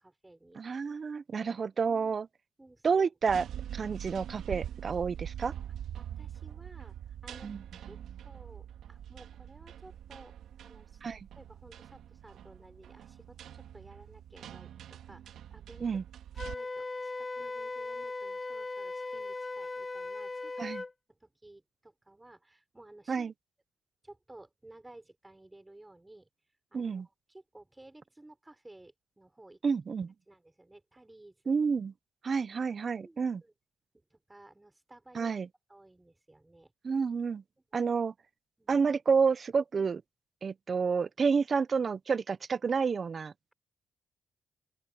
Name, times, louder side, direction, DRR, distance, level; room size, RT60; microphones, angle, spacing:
voice 1, 0.0-0.6 1.8-2.2 2.6-3.0 5.0-5.3 6.0-6.9 7.2-8.0 8.2-11.0 11.4-16.0 16.4-20.7 21.1-23.3 24.0-26.3 26.7-29.6 30.3-31.5 33.0-33.5 34.1-35.3 35.7-36.7 38.6-38.8, right 2 dB, 15° right, 6.3 m, -55 dB
voice 2, 0.6-2.3 2.8-3.4 3.7-5.5 7.4-7.6 11.0-11.2 15.8-16.0 20.6-20.8 23.1-23.3 26.7-27.1 29.6-30.1 31.5-31.9 32.2-33.4 35.1-35.5 36.8-37.4 37.7-38.1 38.7-40.0 40.4-43.3, right 5 dB, 45° right, 0.9 m, -29 dB
sound 1, 3.2-16.5, right 10 dB, 85° right, 2.2 m, -44 dB
Wind instrument woodwind instrument, 16.4-20.9, left 3 dB, 25° left, 0.9 m, -38 dB
open air
cardioid pair, 95°, 0 cm